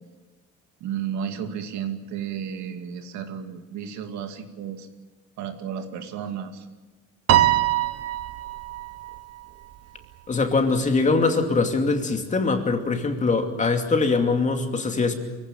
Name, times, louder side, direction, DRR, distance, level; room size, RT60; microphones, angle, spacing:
voice 1, 0.8-4.9 5.4-6.7, right 8 dB, 75° right, 6 dB, 2.4 m, -33 dB
Piano, 7.3-9.8, right 14 dB, 55° right, 1.1 m, -23 dB
voice 2, 10.3-15.1, left 3 dB, 25° left, 5 dB, 2.6 m, -22 dB
23.5 x 16.0 x 9.1 m, 1.2 s
cardioid pair, 120°, 29 cm